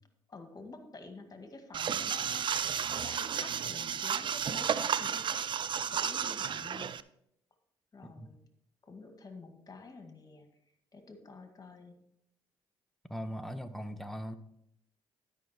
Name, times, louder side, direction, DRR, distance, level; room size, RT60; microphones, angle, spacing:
voice 1, 0.3-5.4 5.8-7.0 7.9-8.4 8.8-10.5 10.9-12.0, left 3 dB, 35° left, 1.9 m, -49 dB
sound 1, 1.7-7.0, right 8 dB, 45° right, 0.4 m, -33 dB
voice 2, 13.1-14.3, equal, ahead, 0.9 m, -40 dB
12.0 x 5.7 x 4.3 m
supercardioid pair, 60°, 11 cm